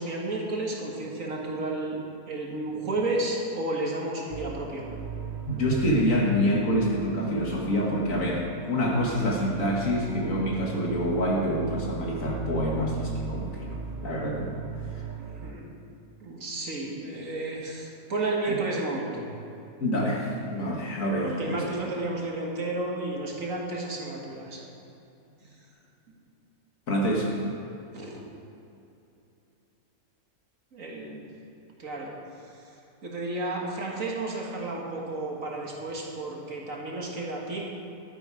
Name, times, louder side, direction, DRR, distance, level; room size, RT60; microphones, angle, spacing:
voice 1, 0.0-4.8 15.3-15.7 16.2-19.2 21.2-24.6 27.9-28.2 30.7-31.3 31.8-32.1 32.4-32.7 33.0-37.7, right 2 dB, 55° right, -1 dB, 1.9 m, -32 dB
sound 1, 4.3-15.5, right 7 dB, 90° right, 0.4 m, -37 dB
voice 2, 5.5-14.5 14.9-15.0 18.5-18.6 19.8-21.6 26.9-27.4, equal, 55° left, -2 dB, 2.0 m, -27 dB
12.0 x 9.5 x 4.8 m, 2.8 s
omnidirectional pair, 1.7 m